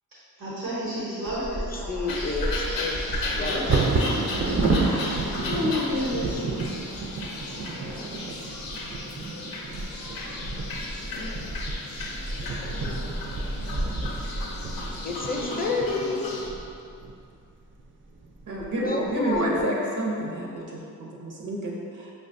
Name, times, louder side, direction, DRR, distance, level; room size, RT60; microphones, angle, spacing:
voice 1, 0.4-2.3 2.6-2.7 3.3-3.8 5.4-6.4, left 1 dB, 85° right, -11 dB, 1.1 m, -31 dB
Bird vocalization bird call bird song / Wind / Thunder, 1.3-17.2 17.8-17.9 18.2-18.6 19.1-19.6, right 3 dB, 35° right, 0.4 m, -30 dB
voice 2, 1.7-3.0 3.3-3.8 15.0-16.3 18.8-19.7, left 3 dB, 25° left, 0 dB, 0.5 m, -30 dB
sound 1, 2.1-16.5, left 2 dB, 90° left, 0.5 m, -34 dB
voice 3, 18.5-22.1, right 1 dB, 65° right, -2 dB, 0.7 m, -29 dB
4.9 x 2.3 x 2.5 m, 2.4 s
cardioid pair, 45°, 34 cm